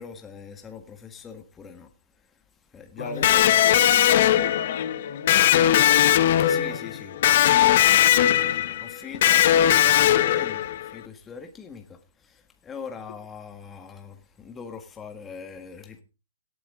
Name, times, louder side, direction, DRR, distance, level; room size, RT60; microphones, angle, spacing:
voice 1, 0.0-1.9 2.2-2.4 2.7-3.8 6.5-7.2 8.1-16.0, left 6 dB, 15° left, 1.6 m, -41 dB
voice 2, 2.9-6.0 6.3-7.4, left 6 dB, 70° left, 3.3 m, -36 dB
Electric guitar, 3.2-10.9, left 12 dB, 50° left, 1.1 m, -19 dB
17.5 x 8.7 x 3.8 m
hypercardioid pair, 140°, 0 cm